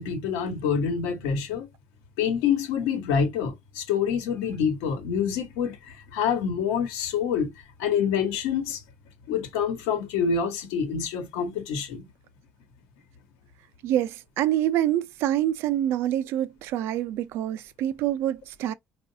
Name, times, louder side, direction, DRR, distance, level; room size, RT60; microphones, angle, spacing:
voice 1, 0.0-1.7 2.2-7.5 7.8-8.8 9.3-12.1, left 7 dB, 90° left, 1.1 m, -26 dB
voice 2, 13.8-18.7, right 12 dB, 75° right, 0.4 m, -26 dB
4.5 x 2.4 x 2.7 m
supercardioid pair, 75°, 4 cm